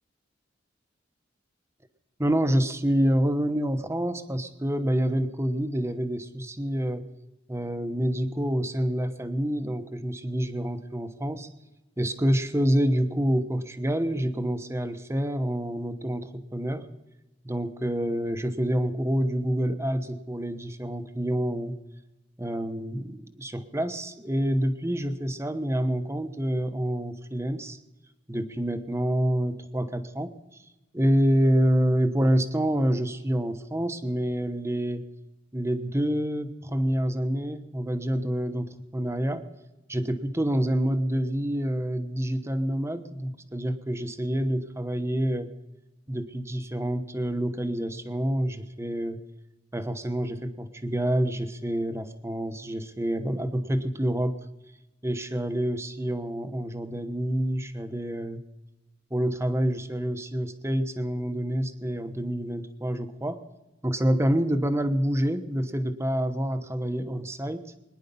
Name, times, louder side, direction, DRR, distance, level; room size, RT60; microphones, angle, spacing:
voice 1, 2.2-7.1 7.5-11.5 12.0-16.9 17.4-21.8 22.4-27.8 28.3-30.3 30.9-35.0 35.5-39.4 39.9-45.5 46.1-49.2 49.7-54.4 55.0-58.4 59.1-63.4 63.8-67.7, equal, 15° right, 8 dB, 1.0 m, -27 dB
22.5 x 10.5 x 5.4 m, 1.0 s
head